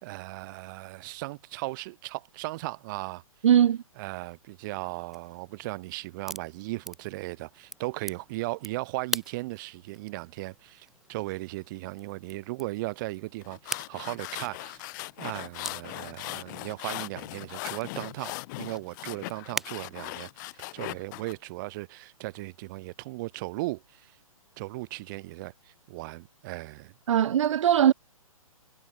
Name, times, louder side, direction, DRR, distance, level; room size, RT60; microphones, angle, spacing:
voice 1, 0.0-3.2 4.0-14.9 15.2-20.5 20.7-24.1 24.6-26.9, right 21 dB, 35° right, 1.7 m, -37 dB
voice 2, 3.4-3.8 27.1-27.9, right 10 dB, 60° right, 0.4 m, -20 dB
sound 1, 5.1-19.7, right 1 dB, ahead, 2.0 m, -43 dB
sound 2, 13.4-21.3, left 21 dB, 30° left, 1.2 m, -39 dB
figure-of-eight pair, 130°, 18 cm